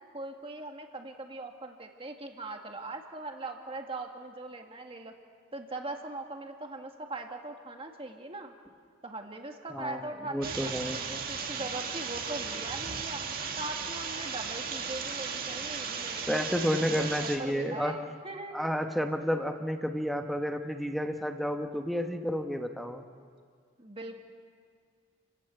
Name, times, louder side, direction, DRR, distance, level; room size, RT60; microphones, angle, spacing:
voice 1, 0.1-5.1 5.5-8.5 9.0-13.2 13.6-18.6 23.8-24.2, right 2 dB, 25° right, 3 dB, 1.9 m, -40 dB
voice 2, 10.3-11.0 16.3-18.0 18.5-23.0, equal, ahead, 5 dB, 1.1 m, -31 dB
sound 1, 10.4-17.4, right 5 dB, 45° right, 2.1 m, -36 dB
30.0 x 15.5 x 8.2 m, 2.1 s
head